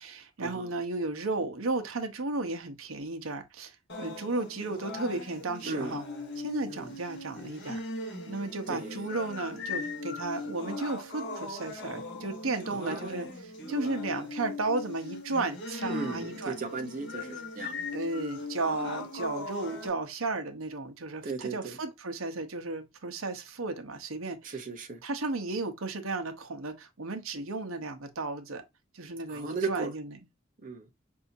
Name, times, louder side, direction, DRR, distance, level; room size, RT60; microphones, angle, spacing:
voice 1, 0.0-6.0 6.4-7.8 8.3-16.6 17.9-24.5 25.0-28.6 28.9-30.1, right 3 dB, 85° right, 0.9 m, -34 dB
sound 1, 3.9-19.9, left 2 dB, 55° left, 1.8 m, -39 dB
voice 2, 8.7-9.1 12.7-13.3 15.9-17.7 21.2-21.8 24.4-25.0 29.3-29.9 30.6-30.9, right 4 dB, 40° right, 0.7 m, -36 dB
5.6 x 2.7 x 2.7 m
head